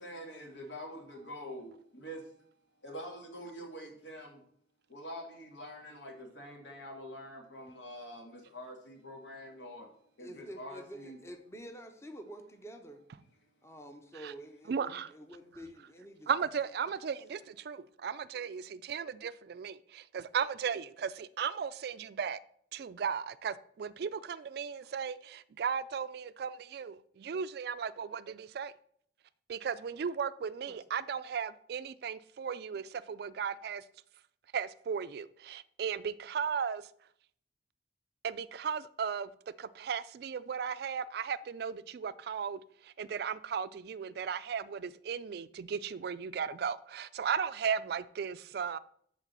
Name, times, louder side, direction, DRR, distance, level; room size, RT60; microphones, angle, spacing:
voice 1, 0.0-2.3 2.8-4.5 4.9-9.9 10.2-11.2 17.6-17.9, equal, 85° left, 1.9 m, -46 dB
voice 2, 10.2-13.0 13.6-16.3 16.8-16.9 18.4-18.6 24.8-24.9 30.7-30.8, right 1 dB, 15° left, 0.7 m, -48 dB
voice 3, 14.7-15.1 16.3-22.4 22.7-28.7 29.5-33.8 34.5-36.8 38.2-39.3 39.6-42.6 43.0-48.8, right 7 dB, 60° right, 0.3 m, -36 dB
7.3 x 3.9 x 6.7 m
head